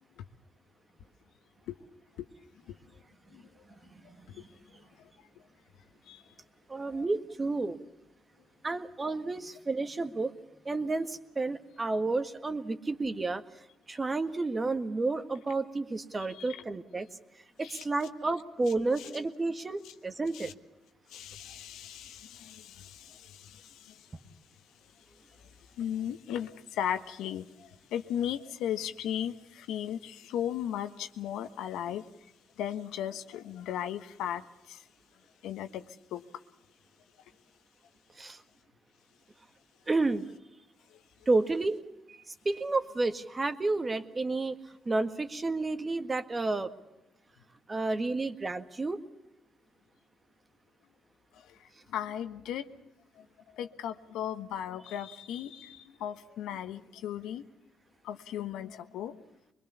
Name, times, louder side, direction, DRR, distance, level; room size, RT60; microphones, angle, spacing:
voice 1, 4.0-4.4 6.1-6.2 6.9-7.0 16.2-16.6 17.6-17.8 19.0-19.1 20.3-20.5 21.1-24.0 25.8-32.1 32.6-34.8 35.4-35.8 36.1-36.2 51.9-52.8 53.2-53.3 53.6-57.4 58.0-59.2, left 10 dB, 90° left, 9 dB, 1.3 m, -36 dB
voice 2, 6.7-7.8 8.6-10.3 10.7-13.4 13.9-17.1 17.6-20.5 38.2-38.4 39.9-40.2 41.3-41.8 42.1-44.6 44.9-46.7 47.7-49.0, right 3 dB, 25° right, 9 dB, 1.7 m, -31 dB
23.5 x 22.0 x 7.0 m, 0.94 s
cardioid pair, 90°, 0 cm